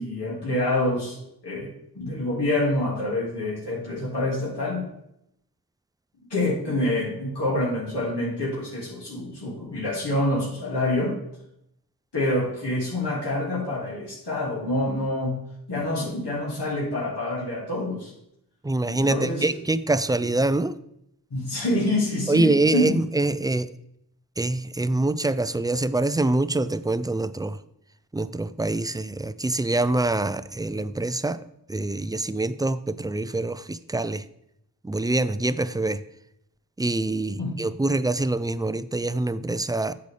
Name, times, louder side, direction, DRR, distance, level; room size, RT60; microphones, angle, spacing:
voice 1, 0.0-1.7 2.0-4.8 6.3-11.2 12.1-15.3 15.7-18.1 18.9-19.5 21.3-22.9 37.4-37.5, left 1 dB, 75° left, 2.2 m, -26 dB
voice 2, 18.6-20.8 22.3-23.7 24.4-27.6 28.1-31.4 31.7-34.2 34.8-36.0 36.8-39.9, right 2 dB, 10° right, 0.3 m, -25 dB
8.2 x 6.8 x 3.3 m
wide cardioid pair, 45°, 41 cm